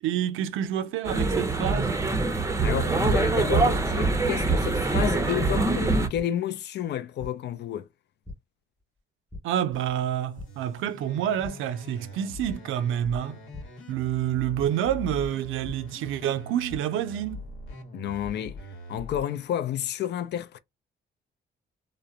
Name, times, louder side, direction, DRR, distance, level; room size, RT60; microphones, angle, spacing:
voice 1, 0.0-2.0 9.4-13.4 13.9-17.5, right 10 dB, 85° right, 0.5 m, -28 dB
sound 1, 1.0-6.1, right 3 dB, 15° right, 0.6 m, -24 dB
voice 2, 2.6-7.9 17.9-18.6 18.9-20.6, left 10 dB, 60° left, 0.4 m, -31 dB
sound 2, 5.1-5.2 6.1-6.2 7.2-7.3 8.2-8.3 8.8-9.0 9.3-9.4 10.3-10.4 11.4-11.5 12.5-12.6 13.5-13.6 14.6-14.7 15.6-15.7 16.4-16.8, left 2 dB, 5° left, 1.1 m, -39 dB
sound 3, 9.7-19.2, left 1 dB, 80° left, 1.0 m, -43 dB
2.9 x 2.0 x 2.3 m
cardioid pair, 90°, 20 cm